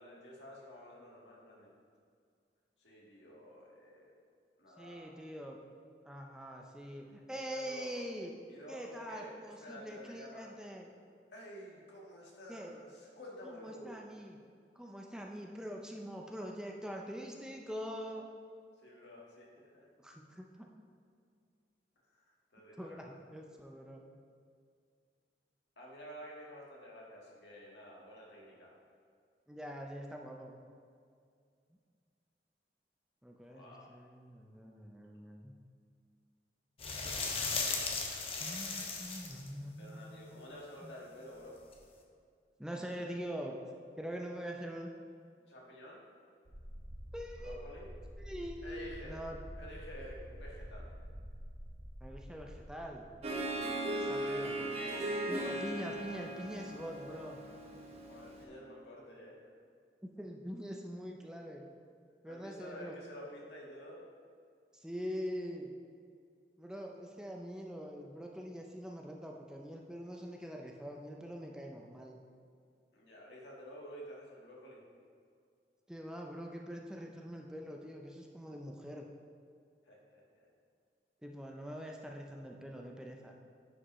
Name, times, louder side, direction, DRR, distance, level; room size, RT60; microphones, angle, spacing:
voice 1, 0.0-1.7 2.8-4.1 4.6-5.2 6.6-8.0 8.5-10.5 11.3-14.1 18.8-19.9 22.1-23.2 25.8-28.7 33.5-33.9 39.8-41.6 45.5-46.1 47.4-47.9 48.6-49.2 49.6-50.9 58.0-59.4 62.2-64.0 72.9-74.8 79.8-80.5, equal, 85° left, -3 dB, 1.6 m, -51 dB
voice 2, 4.8-5.6 6.0-8.3 8.7-10.9 12.5-12.7 13.4-14.4 14.8-18.2 20.0-20.7 22.8-24.0 29.5-30.6 33.2-35.5 38.4-40.5 40.8-41.0 42.6-43.6 44.0-44.9 47.1-47.6 48.2-49.4 52.0-53.1 54.0-54.6 55.3-57.4 60.0-61.6 62.2-63.0 64.7-65.7 66.6-72.2 75.9-79.1 81.2-83.3, equal, 5° right, 0 dB, 0.4 m, -44 dB
sound 1, 36.8-39.5 41.7-41.8, left 4 dB, 35° left, 0.7 m, -36 dB
sound 2, 46.5-54.0, equal, 75° right, 1.1 m, -48 dB
Harp, 53.2-58.4, right 1 dB, 35° right, 0.8 m, -38 dB
9.7 x 5.1 x 3.1 m, 2.2 s
head